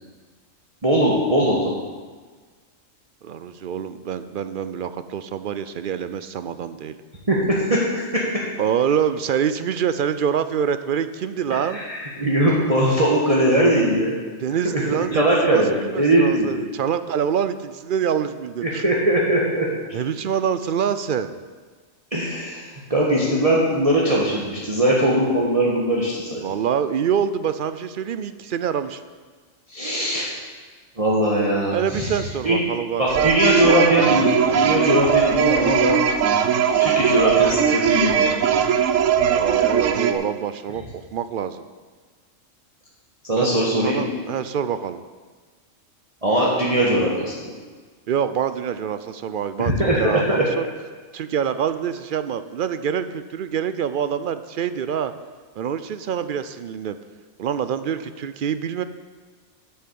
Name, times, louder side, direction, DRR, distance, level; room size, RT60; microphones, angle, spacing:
voice 1, 0.8-1.7 7.3-8.5 11.7-14.1 14.6-14.8 15.1-16.5 18.6-19.7 22.1-26.4 29.7-30.4 31.0-32.2 32.4-32.6 33.0-36.0 36.8-38.4 43.2-44.1 46.2-47.5 49.6-50.4, right 1 dB, 30° right, -5 dB, 1.6 m, -20 dB
voice 2, 3.2-6.9 8.6-11.8 13.4-13.8 14.4-18.8 19.9-21.4 26.4-29.0 31.7-33.3 39.2-41.7 43.3-45.0 48.1-50.6 51.1-55.1 55.6-57.0 57.4-58.8, right 8 dB, 60° right, 12 dB, 0.5 m, -26 dB
sound 1, 33.1-40.1, right 8 dB, 75° right, 1.1 m, -19 dB
8.8 x 7.0 x 8.5 m, 1.5 s
omnidirectional pair, 1.3 m